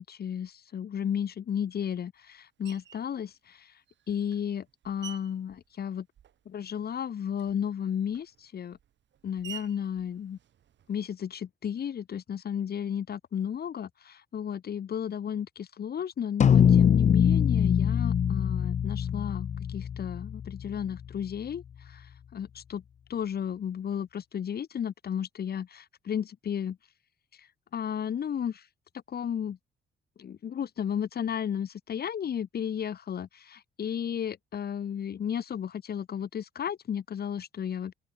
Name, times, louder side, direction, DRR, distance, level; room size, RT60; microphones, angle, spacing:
voice 1, 0.0-3.6 4.1-6.0 6.4-8.8 9.2-10.4 10.9-21.6 21.9-22.0 22.3-22.8 23.1-26.8 27.7-28.6 29.1-29.6 30.2-37.9, left 8 dB, 50° left, 1.7 m, -33 dB
Screech, 2.6-3.1 3.9-6.6 6.9-11.2, right 10 dB, 65° right, 7.7 m, -50 dB
sound 1, 16.4-21.0, left 8 dB, 35° left, 0.5 m, -23 dB
open air
cardioid pair, 90°, 20 cm